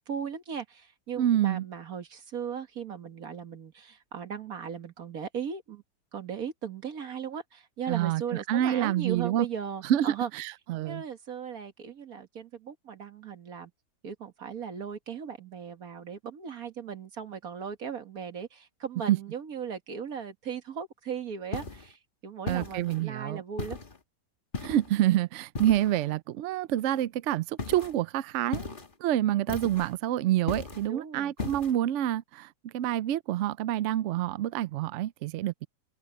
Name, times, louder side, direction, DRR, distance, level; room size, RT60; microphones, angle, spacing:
voice 1, 0.1-5.8 6.1-10.3 10.9-13.7 14.0-23.8 30.9-31.3, right 7 dB, 55° right, 2.0 m, -37 dB
voice 2, 1.2-1.6 7.9-9.5 9.8-11.0 19.1-19.2 22.5-23.4 24.6-28.7 29.0-35.7, right 12 dB, 80° right, 0.6 m, -27 dB
sound 1, 21.5-21.9 22.5-23.0 23.6-24.0 24.5-25.0 25.6-26.1 27.6-27.9 28.5-28.9 29.5-30.0 30.5-30.9 31.4-31.7, left 4 dB, 30° left, 1.6 m, -37 dB
omnidirectional pair, 1.8 m